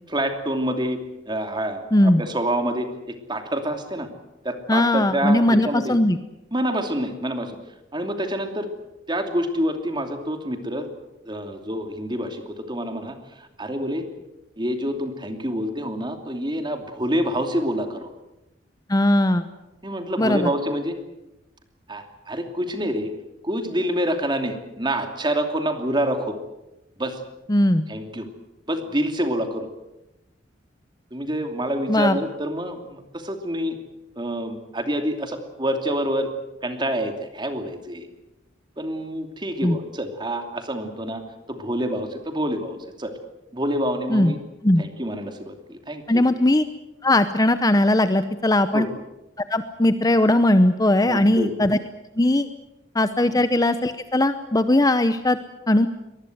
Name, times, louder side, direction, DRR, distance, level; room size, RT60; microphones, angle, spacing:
voice 1, 0.1-4.1 4.4-6.0 6.5-7.6 7.9-8.7 9.1-10.9 11.2-14.0 14.6-18.1 19.8-20.9 21.9-23.1 23.4-26.4 27.0-27.2 27.9-28.3 28.7-29.7 31.1-33.8 34.2-36.3 36.6-38.1 38.8-41.2 41.5-43.1 43.5-44.4 44.8-46.3 48.7-48.9 51.1-51.5 53.2-53.4, equal, 25° right, 6 dB, 2.7 m, -27 dB
voice 2, 1.9-2.2 4.7-6.2 18.9-19.4 20.2-20.5 27.5-27.8 31.9-32.2 39.6-39.8 44.1-44.3 44.6-44.8 46.1-46.6 47.0-48.9 49.4-51.8 52.2-52.5 52.9-55.4 55.7-55.9, left 1 dB, 20° left, 11 dB, 0.8 m, -19 dB
24.0 x 20.0 x 7.9 m, 0.95 s
head